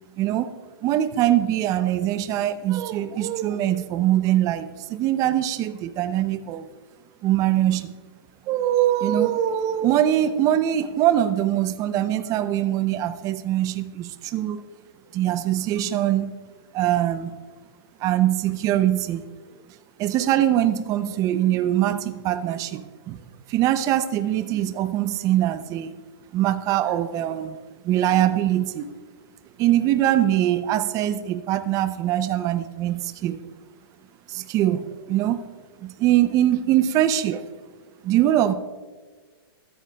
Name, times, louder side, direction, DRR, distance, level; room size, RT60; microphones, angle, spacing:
voice 1, 0.2-0.5 0.8-6.7 7.2-7.9 8.5-14.6 15.1-16.3 16.7-17.3 18.0-19.2 20.0-23.2 23.5-25.9 26.3-27.6 27.8-28.8 29.6-33.4 34.3-35.4 35.8-37.5 38.0-38.5, right 12 dB, 25° right, 12 dB, 0.6 m, -22 dB
13.0 x 13.0 x 2.3 m, 1.5 s
hypercardioid pair, 140°, 13 cm